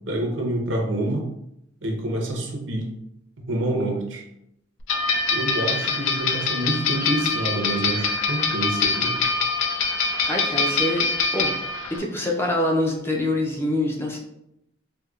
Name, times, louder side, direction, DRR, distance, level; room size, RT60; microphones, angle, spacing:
voice 1, 0.1-1.2 1.8-2.9 3.4-4.2 5.3-9.2, right 1 dB, 70° right, 1 dB, 0.7 m, -27 dB
sound 1, 4.9-12.0, left 4 dB, 90° left, 0.4 m, -24 dB
voice 2, 10.3-11.1 11.3-11.5 11.9-14.2, left 1 dB, 10° left, -2 dB, 0.4 m, -25 dB
4.5 x 2.2 x 2.3 m, 0.80 s
head